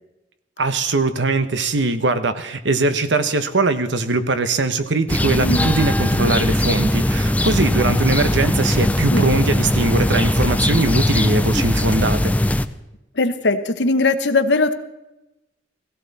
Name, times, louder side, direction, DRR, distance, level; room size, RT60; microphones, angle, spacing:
voice 1, 0.6-12.3, right 3 dB, 85° right, 11 dB, 1.0 m, -21 dB
sound 1, 5.1-12.7, left 1 dB, 10° left, 0.4 m, -19 dB
voice 2, 5.4-5.7 9.1-9.3 13.2-14.7, left 3 dB, 75° left, 10 dB, 1.0 m, -19 dB
16.5 x 16.0 x 4.1 m, 0.96 s
head